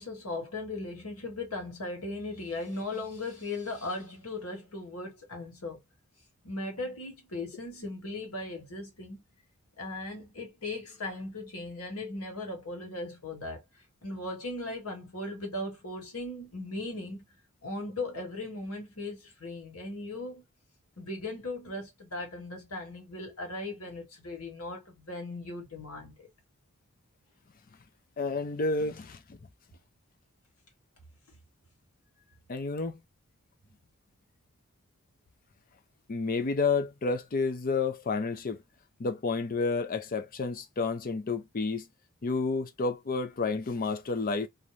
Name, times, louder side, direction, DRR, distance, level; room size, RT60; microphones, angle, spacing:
voice 1, 0.0-5.8 6.4-9.2 9.8-13.6 14.0-17.2 17.6-20.4 21.0-26.3, left 2 dB, 75° left, 1.3 m, -38 dB
voice 2, 28.2-29.2 32.5-33.0 36.1-38.6 39.0-41.9 42.2-44.5, left 4 dB, 40° left, 0.4 m, -30 dB
2.5 x 2.1 x 3.0 m
head